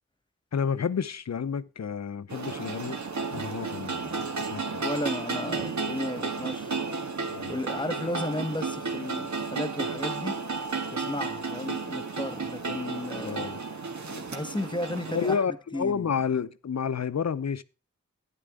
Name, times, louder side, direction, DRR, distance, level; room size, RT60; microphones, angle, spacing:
voice 1, 0.5-3.0 3.3-4.2 4.5-4.8 7.3-7.5 13.2-13.6 15.1-17.6, left 6 dB, 65° left, 0.7 m, -30 dB
sound 1, 2.3-15.4, right 4 dB, 75° right, 1.6 m, -33 dB
voice 2, 4.8-6.9 7.5-10.3 10.9-13.5 14.1-16.1, left 1 dB, 15° left, 1.3 m, -34 dB
11.5 x 10.0 x 3.7 m
wide cardioid pair, 75°, 29 cm